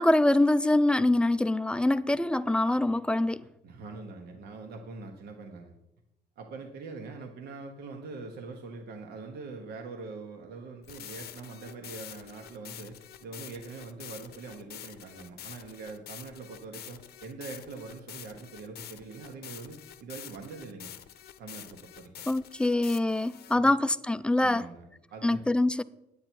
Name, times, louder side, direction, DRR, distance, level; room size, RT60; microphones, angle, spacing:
voice 1, 0.0-3.4 22.3-24.6 25.2-25.8, left 1 dB, 5° left, 0.4 m, -24 dB
voice 2, 3.6-5.7 6.4-20.9 21.4-22.1 23.5-23.7 24.3-25.4, right 4 dB, 75° right, 1.2 m, -43 dB
sound 1, 10.8-23.6, left 10 dB, 70° left, 0.7 m, -47 dB
9.8 x 8.5 x 4.5 m
cardioid pair, 95°, 17 cm